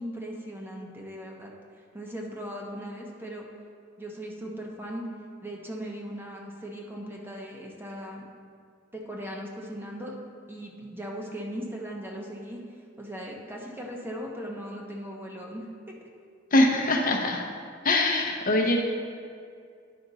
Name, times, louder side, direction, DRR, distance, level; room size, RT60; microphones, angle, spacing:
voice 1, 0.0-1.5 1.8-3.4 4.0-5.1 5.4-8.2 8.9-10.2 10.5-12.6 13.0-15.7 18.7-18.8, equal, 10° right, -1 dB, 0.8 m, -38 dB
voice 2, 16.5-17.4 17.8-18.8, left 2 dB, 45° left, 1 dB, 0.8 m, -22 dB
10.5 x 5.1 x 4.0 m, 2.2 s
head